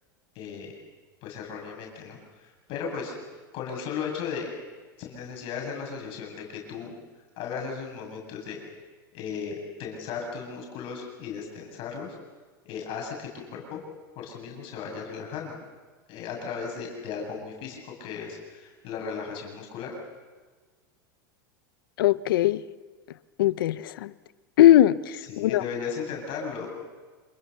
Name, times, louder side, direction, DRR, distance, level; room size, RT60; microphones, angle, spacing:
voice 1, 0.3-0.7 1.2-3.2 3.5-4.5 5.0-6.9 7.4-8.6 9.1-12.1 12.6-13.8 14.1-15.6 16.1-20.0 25.3-26.7, left 6 dB, 50° left, 0 dB, 8.0 m, -36 dB
voice 2, 22.0-22.6 23.4-24.1 24.6-25.6, left 13 dB, 75° left, 17 dB, 0.9 m, -20 dB
27.5 x 22.5 x 6.9 m, 1.4 s
hypercardioid pair, 100°, 12 cm